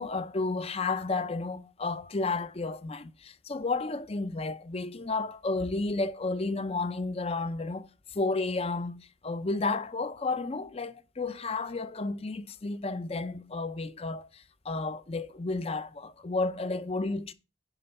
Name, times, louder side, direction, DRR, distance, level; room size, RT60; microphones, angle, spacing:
voice 1, 0.0-17.3, left 3 dB, 30° left, 0.6 m, -32 dB
9.9 x 5.1 x 5.4 m
head